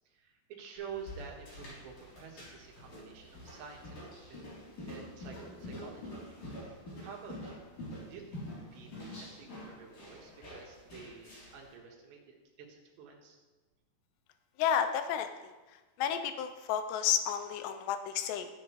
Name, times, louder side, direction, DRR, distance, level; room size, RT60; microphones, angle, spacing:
voice 1, 0.1-4.0 4.3-4.4 4.9-6.2 7.0-7.7 8.1-8.4 8.7-13.4, right 6 dB, 80° right, 1 dB, 3.6 m, -49 dB
sound 1, 0.8-11.7, left 1 dB, 45° left, 4.1 m, -47 dB
voice 2, 14.6-18.5, left 9 dB, 90° left, 9 dB, 2.8 m, -32 dB
13.5 x 8.9 x 3.1 m, 1.2 s
omnidirectional pair, 4.9 m